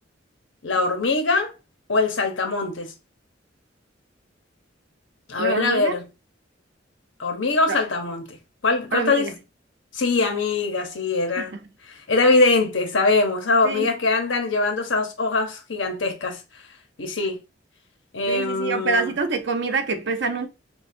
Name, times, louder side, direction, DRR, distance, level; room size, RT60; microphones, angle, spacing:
voice 1, 0.6-1.5 1.9-2.9 5.3-6.0 7.2-8.4 8.6-9.3 9.9-11.5 12.1-16.4 17.0-17.4 18.1-19.1, left 3 dB, 80° left, 0.9 m, -22 dB
voice 2, 5.4-6.0 7.7-7.8 8.9-9.3 11.4-11.6 13.6-13.9 18.3-20.5, right 4 dB, 65° right, 0.8 m, -26 dB
6.3 x 2.3 x 2.6 m
head